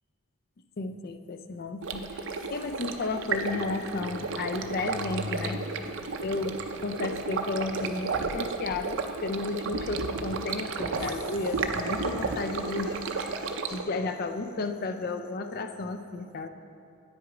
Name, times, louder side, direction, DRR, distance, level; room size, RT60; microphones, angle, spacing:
voice 1, 0.8-6.6 6.8-16.5, left 3 dB, 45° left, 8 dB, 0.3 m, -33 dB
Stream, 1.8-13.8, right 4 dB, 55° right, 0.4 m, -33 dB
9.0 x 6.1 x 4.9 m, 2.6 s
head